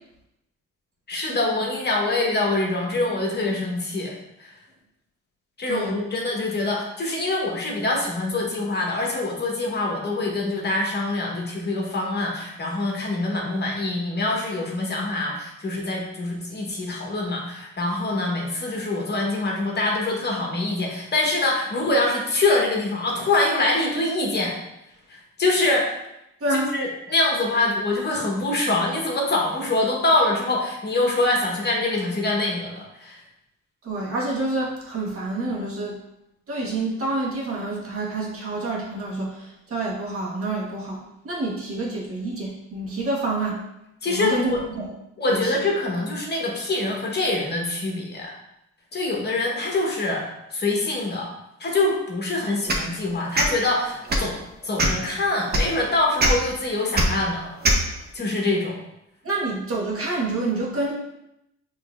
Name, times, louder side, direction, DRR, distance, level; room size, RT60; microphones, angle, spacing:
voice 1, 1.1-4.1 4.4-4.6 5.6-24.5 25.1-25.9 26.5-33.2 44.0-44.6 45.2-48.3 48.9-51.3 51.6-57.6 58.1-58.8, left 2 dB, 35° left, -1 dB, 1.1 m, -24 dB
voice 2, 33.8-36.0 36.5-43.6 44.0-44.9 45.3-45.6 59.2-60.9, right 2 dB, 50° right, -4 dB, 1.4 m, -28 dB
sound 1, 52.7-52.9 53.3-53.5 54.0-54.3 54.8-55.0 55.5-55.6 56.2-56.3 56.9-57.0 57.6-57.8, right 1 dB, 35° right, 0.8 m, -20 dB
5.9 x 3.1 x 2.4 m, 0.84 s
cardioid pair, 90°, 30 cm